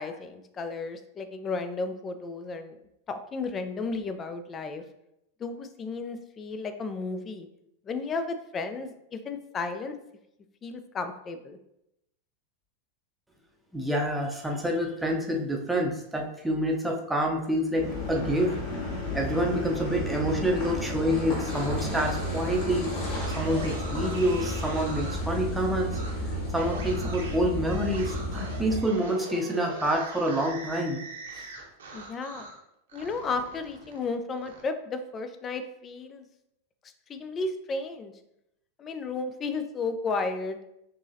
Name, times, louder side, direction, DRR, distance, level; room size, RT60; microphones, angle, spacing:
voice 1, 0.0-2.8 3.1-4.8 5.4-7.5 7.9-10.0 10.6-11.6 31.9-32.5 32.9-36.3 37.1-38.1 38.8-40.6, left 3 dB, 25° left, 9 dB, 0.4 m, -33 dB
voice 2, 13.7-18.5 19.1-22.9 23.3-26.0 26.5-31.0 31.4-31.5, equal, 5° right, 0 dB, 0.7 m, -27 dB
Car passing by / Idling / Accelerating revving vroom, 17.8-28.8, left 1 dB, 45° left, 1.4 m, -32 dB
sound 1, 21.4-25.3 25.9-26.1 26.5-32.6 32.9-34.6, right 3 dB, 65° right, 0.9 m, -42 dB
6.0 x 3.0 x 2.7 m, 0.83 s
figure-of-eight pair, 90°, 0 cm